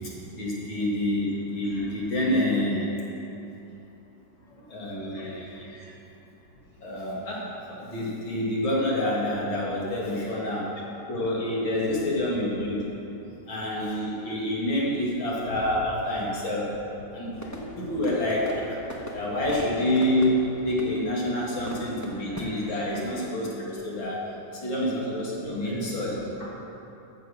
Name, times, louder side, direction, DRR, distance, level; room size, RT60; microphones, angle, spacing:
voice 1, 0.3-2.9 4.7-5.9 6.8-10.8 11.1-12.9 13.5-16.7 17.1-18.8 19.1-26.1, left 1 dB, 65° left, -4 dB, 2.9 m, -28 dB
voice 2, 4.5-5.4 7.1-7.2 10.1-10.3 19.5-19.7 25.4-26.4, equal, 45° left, -8 dB, 3.2 m, -42 dB
sound 1, 17.3-22.5, left 1 dB, 20° left, 0.5 m, -40 dB
14.0 x 6.6 x 6.3 m, 2.9 s
omnidirectional pair, 2.3 m